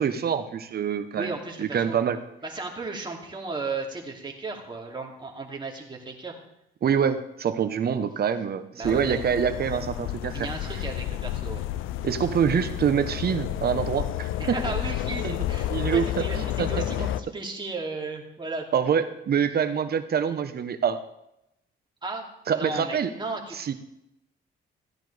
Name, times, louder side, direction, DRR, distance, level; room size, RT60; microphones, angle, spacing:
voice 1, 0.0-1.3 1.6-2.2 6.8-10.5 12.0-14.5 15.2-15.3 15.7-17.1 18.7-21.0 22.5-23.1 23.5-23.7, right 7 dB, 50° right, 10 dB, 1.0 m, -25 dB
voice 2, 1.1-2.0 2.4-6.4 8.7-9.3 10.3-11.6 14.4-18.8 22.0-22.2 22.5-23.6, right 3 dB, 25° right, 0 dB, 2.7 m, -35 dB
sound 1, 8.8-17.2, left 13 dB, 90° left, 0.5 m, -31 dB
15.5 x 10.0 x 3.4 m, 0.84 s
cardioid pair, 90°, 20 cm